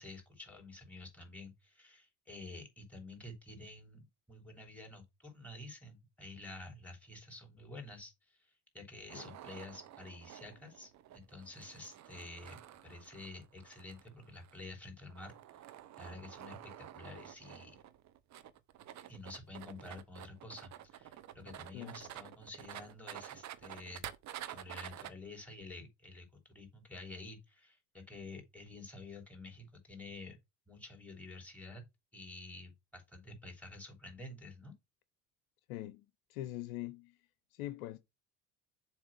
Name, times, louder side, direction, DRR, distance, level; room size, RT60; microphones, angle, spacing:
voice 1, 0.0-15.7 16.0-17.8 19.1-24.0 24.5-30.4 30.7-31.8 32.1-34.7, left 2 dB, 5° left, 3.6 m, -50 dB
sound 1, 9.1-25.1, right 12 dB, 40° right, 0.8 m, -50 dB
voice 2, 35.7-37.2 37.5-38.0, left 15 dB, 65° left, 0.7 m, -43 dB
7.3 x 2.9 x 6.0 m
figure-of-eight pair, 60°, 45 cm